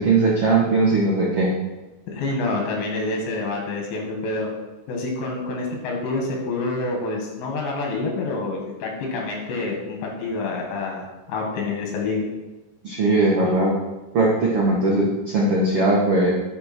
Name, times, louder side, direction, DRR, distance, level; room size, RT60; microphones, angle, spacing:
voice 1, 0.0-1.5 12.8-13.7 14.1-16.3, right 2 dB, 70° right, -4 dB, 1.3 m, -19 dB
voice 2, 2.1-4.5 4.9-12.3, left 3 dB, 75° left, 0 dB, 4.1 m, -27 dB
11.5 x 6.4 x 4.4 m, 1.1 s
omnidirectional pair, 5.1 m